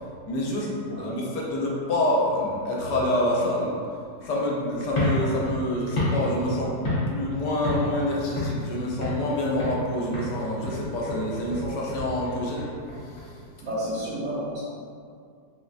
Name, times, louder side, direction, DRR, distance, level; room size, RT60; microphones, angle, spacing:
voice 1, 0.3-3.7 4.2-12.7 13.0-13.3 14.0-14.1, left 1 dB, 90° left, -4 dB, 1.2 m, -27 dB
voice 2, 0.8-1.2 13.6-14.6, equal, 70° right, -10 dB, 0.8 m, -31 dB
sound 1, 4.9-7.3 7.6-8.0 8.4-9.3 9.6-9.9 10.1-13.3, left 1 dB, 70° left, 1.3 m, -29 dB
3.8 x 2.1 x 2.4 m, 2.3 s
omnidirectional pair, 1.8 m